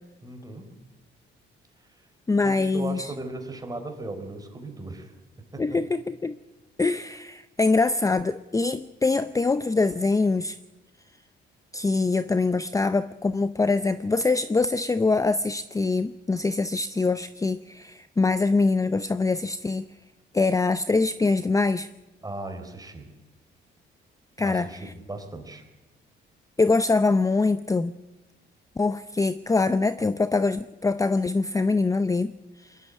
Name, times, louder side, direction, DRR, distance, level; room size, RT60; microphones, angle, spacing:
voice 1, 0.2-0.8 2.4-5.1 5.5-5.8 22.2-23.1 24.4-25.6, right 2 dB, 20° right, 5 dB, 4.0 m, -37 dB
voice 2, 2.3-3.1 5.6-6.3 6.8-10.6 11.7-19.9 20.3-21.9 24.4-24.9 26.6-27.9 28.8-32.3 32.6-32.8, left 3 dB, 15° left, 13 dB, 0.6 m, -24 dB
22.5 x 12.0 x 9.6 m, 1.1 s
cardioid pair, 90°, 20 cm